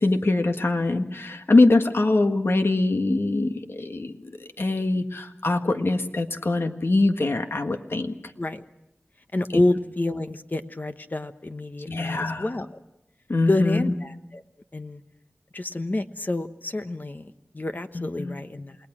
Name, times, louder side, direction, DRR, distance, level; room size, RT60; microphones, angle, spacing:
voice 1, 0.0-8.1 9.5-9.6 11.9-12.5 13.3-13.9 17.9-18.4, left 2 dB, 65° left, 6 dB, 1.7 m, -23 dB
voice 2, 9.3-12.7 13.5-14.4 14.7-15.0 15.5-18.8, left 2 dB, 45° left, 8 dB, 1.1 m, -28 dB
28.5 x 19.5 x 6.2 m, 0.85 s
wide cardioid pair, 55°, 4 cm